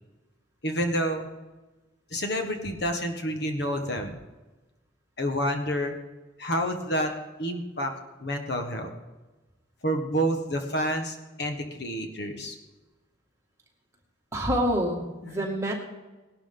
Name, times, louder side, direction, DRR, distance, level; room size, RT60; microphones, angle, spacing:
voice 1, 0.6-1.3 2.1-4.2 5.2-5.9 6.4-7.1 7.4-7.9 8.2-8.9 9.8-12.5, equal, 55° left, 5 dB, 1.4 m, -28 dB
voice 2, 14.3-15.7, equal, 15° right, -1 dB, 2.3 m, -27 dB
19.0 x 12.0 x 3.9 m, 1.2 s
head